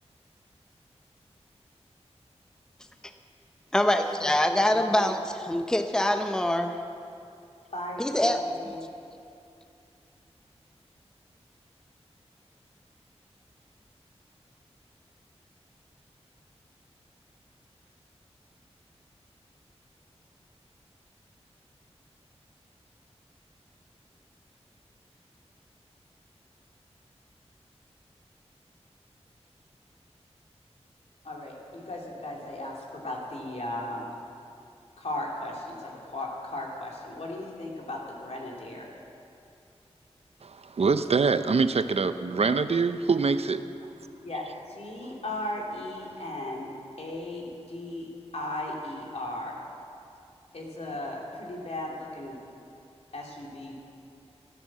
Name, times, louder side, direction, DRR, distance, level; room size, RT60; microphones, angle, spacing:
voice 1, 3.7-6.8 8.0-8.7, left 1 dB, 5° left, 6 dB, 0.7 m, -25 dB
voice 2, 4.7-5.1 7.7-8.8 31.2-34.1 35.0-38.9 44.2-49.6 50.5-52.4 53.1-53.8, left 1 dB, 70° left, -2 dB, 2.9 m, -36 dB
voice 3, 40.4-43.6, right 4 dB, 65° right, 11 dB, 0.6 m, -24 dB
16.0 x 10.5 x 7.4 m, 2.6 s
wide cardioid pair, 80°, 11 cm